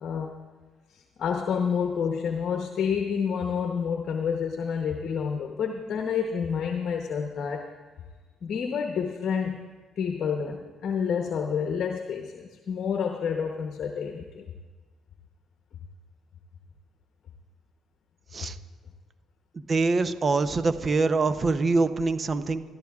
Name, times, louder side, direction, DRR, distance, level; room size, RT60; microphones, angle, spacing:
voice 1, 0.0-0.4 0.9-7.7 8.4-9.6 10.0-14.5, left 6 dB, 60° left, 3 dB, 0.9 m, -29 dB
voice 2, 19.5-22.6, right 3 dB, 40° right, 11 dB, 0.7 m, -24 dB
22.5 x 13.0 x 2.4 m, 1.4 s
supercardioid pair, 60°, 0 cm